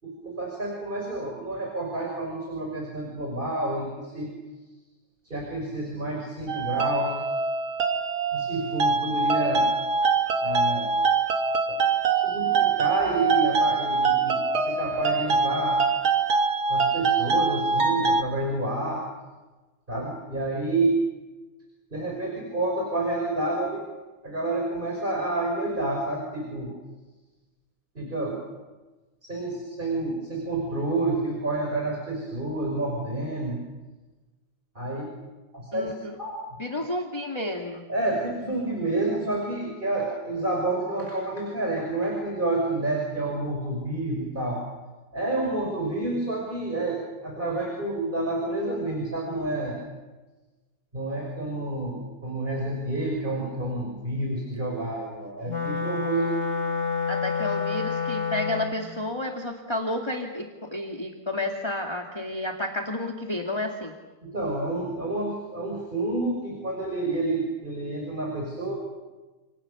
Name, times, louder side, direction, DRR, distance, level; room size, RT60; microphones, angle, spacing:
voice 1, 0.0-4.3 5.2-7.1 8.3-9.7 10.4-10.9 11.7-11.8 12.2-15.8 16.7-19.0 19.9-21.0 21.9-23.8 24.2-26.7 27.9-28.4 29.2-33.6 34.7-35.0 35.5-36.3 37.9-44.6 45.1-49.8 50.9-56.3 64.2-68.7, right 2 dB, 20° right, 0 dB, 6.0 m, -29 dB
sound 1, 6.5-18.2, right 4 dB, 70° right, 2.8 m, -24 dB
voice 2, 35.7-36.2 36.6-37.8 57.1-63.9, left 1 dB, 15° left, 2 dB, 2.1 m, -31 dB
Wind instrument woodwind instrument, 55.5-58.9, left 5 dB, 40° left, 1.0 m, -28 dB
29.5 x 28.5 x 7.1 m, 1.2 s
omnidirectional pair, 2.3 m